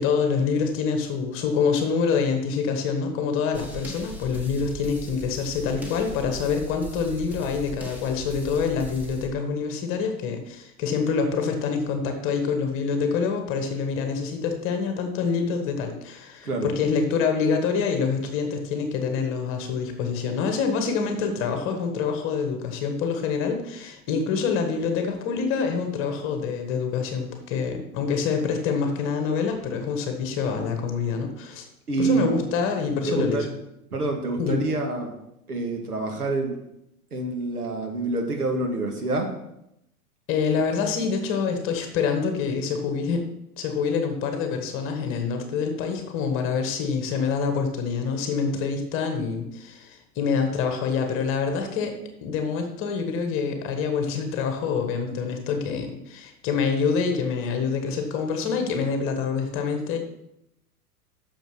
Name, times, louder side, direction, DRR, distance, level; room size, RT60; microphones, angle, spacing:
voice 1, 0.0-31.7 32.0-33.5 34.4-34.7 40.3-43.2 43.6-51.9 52.2-60.0, left 5 dB, 25° left, 5 dB, 1.6 m, -26 dB
sound 1, 3.5-9.3, right 2 dB, 5° right, 1.6 m, -38 dB
voice 2, 31.9-32.3 33.2-33.5 33.9-35.1 35.5-36.6 37.1-39.3, right 3 dB, 75° right, 2 dB, 2.3 m, -27 dB
9.0 x 6.9 x 6.1 m, 0.82 s
figure-of-eight pair, 105°, 46 cm